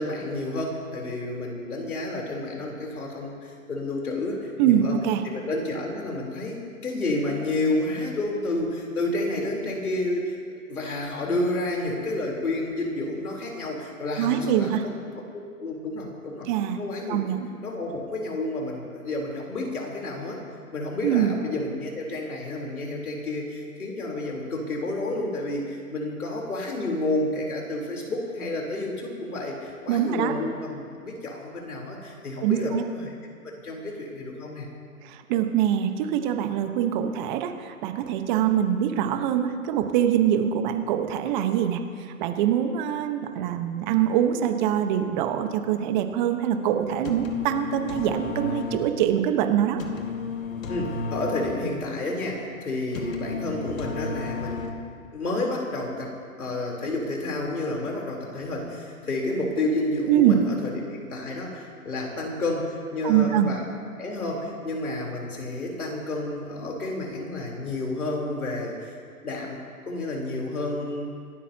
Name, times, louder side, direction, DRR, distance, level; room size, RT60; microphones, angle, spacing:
voice 1, 0.0-5.0 5.2-10.3 10.7-14.9 15.6-16.5 16.8-17.2 17.6-20.4 20.7-33.1 33.4-34.7 50.7-54.8 55.1-56.1 56.4-63.6 64.0-68.9 69.2-69.6 69.9-71.1, left 2 dB, 80° left, -1 dB, 4.0 m, -30 dB
voice 2, 4.6-5.2 14.2-14.8 16.5-16.8 17.1-17.4 21.0-21.3 29.9-30.3 32.4-32.8 35.3-41.8 42.2-49.8 60.1-60.4 63.0-63.5, right 10 dB, 30° right, 6 dB, 1.3 m, -24 dB
sound 1, 46.8-55.1, left 4 dB, 65° left, 2.2 m, -34 dB
27.0 x 13.0 x 2.9 m, 2.2 s
hypercardioid pair, 130°, 43 cm